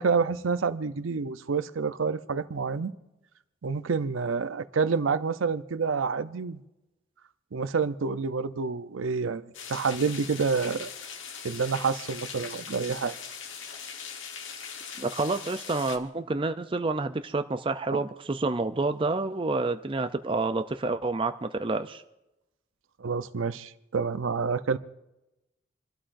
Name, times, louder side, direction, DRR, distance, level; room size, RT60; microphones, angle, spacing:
voice 1, 0.0-2.9 3.6-6.6 7.5-10.9 11.4-13.1 17.9-18.0 23.0-24.8, right 5 dB, 85° right, 0.6 m, -28 dB
sound 1, 9.5-16.0, left 6 dB, 80° left, 1.3 m, -40 dB
voice 2, 15.0-22.0, right 3 dB, 25° right, 0.4 m, -28 dB
28.0 x 12.5 x 2.6 m
head